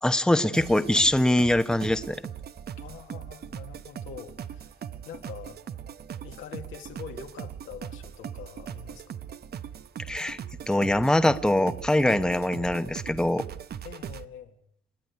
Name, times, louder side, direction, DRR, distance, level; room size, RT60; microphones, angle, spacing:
voice 1, 0.0-2.2 10.1-10.4 10.7-13.4, left 1 dB, 5° left, 10 dB, 0.9 m, -23 dB
sound 1, 0.5-14.2, right 8 dB, 55° right, 0.9 m, -40 dB
voice 2, 2.8-4.8 5.0-5.6 6.2-9.2 13.8-14.6, left 8 dB, 85° left, 4 dB, 2.0 m, -44 dB
28.0 x 10.5 x 9.6 m, 0.74 s
cardioid pair, 90°, 20 cm